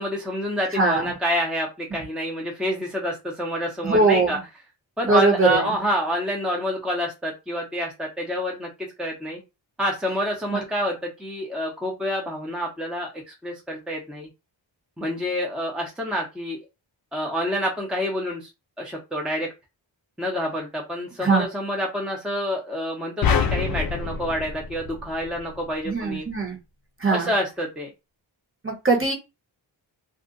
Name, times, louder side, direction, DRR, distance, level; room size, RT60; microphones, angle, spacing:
voice 1, 0.0-4.4 5.0-9.4 9.8-14.3 15.0-16.6 17.1-18.5 18.8-19.5 20.2-26.2 27.1-27.9, equal, ahead, -1 dB, 0.9 m, -28 dB
voice 2, 0.7-1.2 3.8-4.3 5.0-5.7 10.5-10.6 21.2-21.4 25.8-26.6 27.0-27.3 28.6-29.1, right 3 dB, 25° right, 1 dB, 1.2 m, -21 dB
sound 1, 23.2-25.6, left 6 dB, 50° left, 0.5 m, -25 dB
2.6 x 2.4 x 3.8 m, 0.25 s
wide cardioid pair, 90°, 46 cm